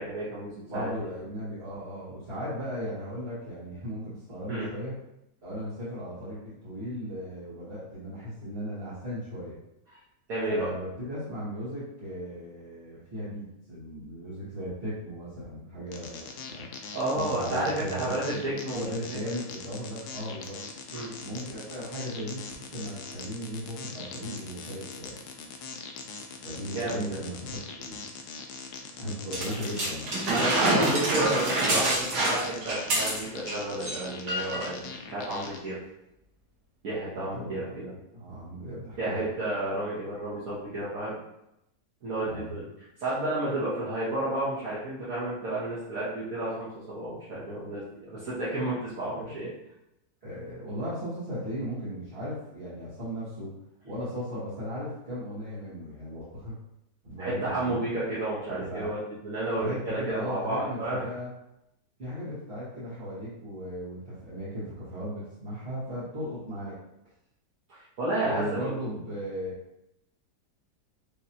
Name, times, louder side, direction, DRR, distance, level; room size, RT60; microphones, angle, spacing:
voice 1, 0.0-0.9 4.5-4.7 10.3-10.7 16.9-18.8 19.1-19.2 20.9-21.1 26.7-27.2 30.3-35.8 36.8-37.9 39.0-41.1 42.0-42.7 43.0-49.5 57.2-59.0 59.2-61.0 67.7-68.4 68.8-68.9, right 1 dB, 60° right, -9 dB, 1.5 m, -31 dB
voice 2, 0.7-4.9 5.4-9.6 10.5-16.7 17.2-20.6 21.2-25.2 26.4-28.0 29.0-30.1 37.2-37.9 38.1-39.3 42.2-42.6 49.2-49.4 50.2-53.5 53.8-56.6 57.0-57.8 58.5-58.9 59.6-61.3 62.0-66.8 68.2-69.6, equal, 40° right, -12 dB, 1.7 m, -37 dB
sound 1, 15.9-35.6, left 5 dB, 75° left, 1.1 m, -41 dB
sound 2, 29.3-33.5 33.8-34.0 34.3-34.7 35.4-35.5, right 2 dB, 85° right, 1.7 m, -26 dB
5.1 x 3.0 x 2.8 m, 0.84 s
omnidirectional pair, 1.7 m